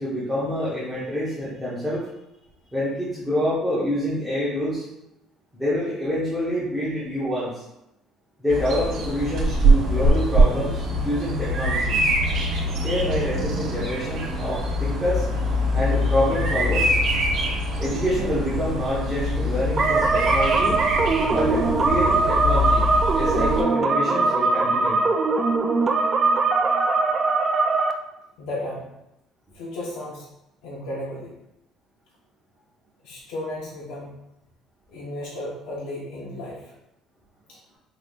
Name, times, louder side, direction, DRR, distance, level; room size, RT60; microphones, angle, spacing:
voice 1, 0.0-2.1 2.7-4.9 5.5-7.6 8.4-12.0 12.8-15.3 15.7-16.9 17.8-20.8 21.3-22.8 23.1-25.0, equal, 5° right, -11 dB, 1.0 m, -26 dB
Bird vocalization bird call bird song, 8.5-23.6, equal, 60° right, 1.4 m, -23 dB
sound 1, 19.8-27.9, right 3 dB, 25° right, 0.3 m, -21 dB
voice 2, 28.4-28.9 29.5-30.3 30.6-31.3 33.0-34.1 34.9-36.7 37.5-37.6, left 1 dB, 85° left, -4 dB, 0.9 m, -34 dB
4.9 x 3.5 x 2.4 m, 0.87 s
cardioid pair, 155°, 0 cm